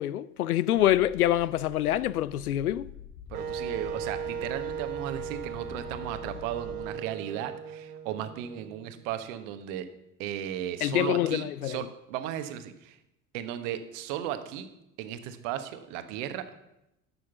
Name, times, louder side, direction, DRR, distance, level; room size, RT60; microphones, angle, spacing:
voice 1, 0.0-2.9 10.8-11.8, left 13 dB, 75° left, 0.5 m, -26 dB
sound 1, 0.8-6.9, left 9 dB, 30° left, 0.7 m, -47 dB
voice 2, 3.3-9.8 10.2-13.0 13.3-14.7 15.0-16.4, right 11 dB, 55° right, 1.2 m, -35 dB
Wind instrument woodwind instrument, 3.3-9.2, right 7 dB, 80° right, 0.9 m, -37 dB
12.0 x 6.4 x 7.1 m
figure-of-eight pair, 70°, 45 cm